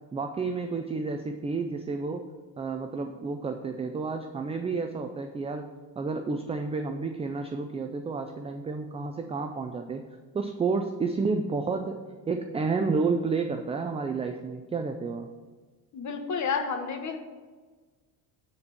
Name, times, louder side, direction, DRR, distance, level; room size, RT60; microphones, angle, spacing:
voice 1, 0.1-2.2 2.6-5.7 6.0-10.0 10.3-12.0 12.3-15.3, right 4 dB, 15° right, 6 dB, 0.3 m, -30 dB
voice 2, 15.9-17.2, left 5 dB, 40° left, 5 dB, 1.2 m, -30 dB
9.5 x 4.4 x 6.9 m, 1.4 s
cardioid pair, 135°, 45 cm